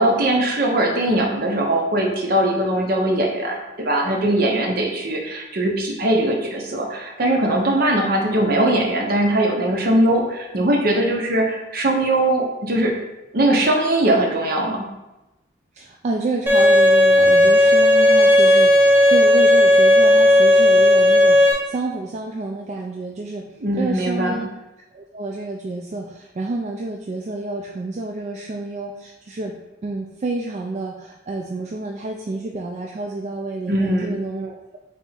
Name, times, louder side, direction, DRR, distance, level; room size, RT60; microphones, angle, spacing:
voice 1, 0.0-12.9 13.3-14.8 23.6-24.4 33.7-34.2, right 1 dB, 55° right, 0 dB, 0.7 m, -20 dB
voice 2, 15.7-24.5 24.9-29.5 29.8-34.8, right 2 dB, 40° right, 1 dB, 0.3 m, -29 dB
Bowed string instrument, 16.5-21.5, left 1 dB, 10° right, 0.7 m, -13 dB
3.5 x 2.8 x 4.3 m, 0.99 s
head